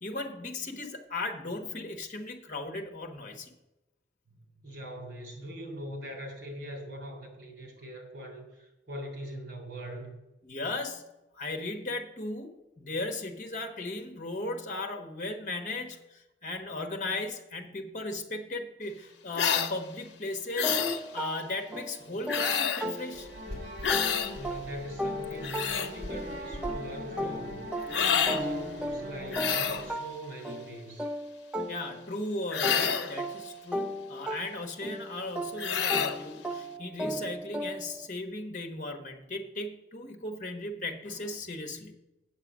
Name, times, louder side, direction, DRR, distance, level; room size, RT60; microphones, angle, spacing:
voice 1, 0.0-3.5 10.4-11.1 11.3-12.5 12.8-20.8 21.1-23.3 31.7-41.9, left 2 dB, 45° left, 4 dB, 1.2 m, -36 dB
voice 2, 4.6-10.1 24.3-31.1, equal, 75° right, 2 dB, 3.1 m, -42 dB
sound 1, 19.3-19.7 20.6-21.0 22.3-22.9 23.8-24.3 25.2-25.9 27.9-28.4 29.3-29.9 32.5-33.1 35.6-36.2, left 7 dB, 85° left, 0.8 m, -28 dB
sound 2, 20.6-23.5 23.9-32.2 32.6-38.1, equal, 5° right, 0.4 m, -37 dB
sound 3, 23.1-29.9, left 1 dB, 50° right, 3.0 m, -40 dB
8.5 x 6.7 x 6.1 m, 0.95 s
head